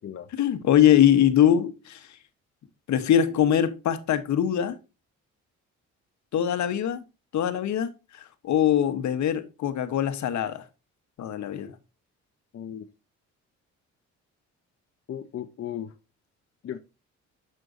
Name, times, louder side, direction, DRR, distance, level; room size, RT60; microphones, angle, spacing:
voice 1, 0.3-2.2 2.9-4.8 6.3-7.0 7.3-10.7 11.2-11.8, left 10 dB, 70° left, 1.0 m, -22 dB
voice 2, 12.5-12.8 15.1-15.9 16.6-16.8, left 10 dB, 50° left, 0.7 m, -35 dB
7.6 x 6.2 x 2.6 m
cardioid pair, 90°, 30 cm